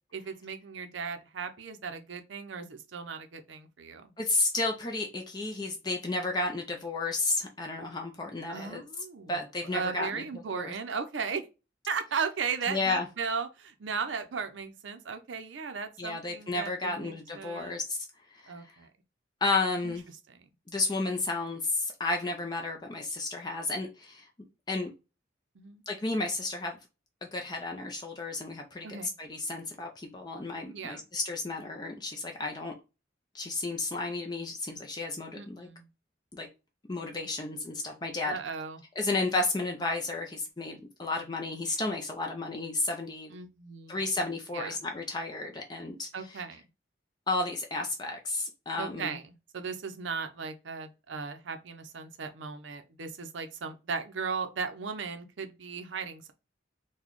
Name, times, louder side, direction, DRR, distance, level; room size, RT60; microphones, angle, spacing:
voice 1, 0.1-4.1 8.5-11.5 11.9-17.8 18.5-18.9 19.8-20.0 20.3-20.4 25.6-25.8 28.8-29.1 30.7-31.0 35.3-35.9 38.2-38.8 43.3-44.0 44.5-44.8 46.1-46.6 48.8-56.3, right 5 dB, 80° right, 0.6 m, -36 dB
voice 2, 4.2-8.8 9.3-10.3 10.5-10.7 12.7-13.1 16.0-18.0 18.3-18.5 19.4-20.1 20.7-24.3 24.7-24.9 25.9-26.8 27.2-32.7 33.3-35.7 36.3-36.5 36.9-38.3 39.0-43.3 43.9-46.1 47.3-49.2, left 2 dB, 20° left, 0.4 m, -32 dB
4.0 x 2.2 x 3.0 m
head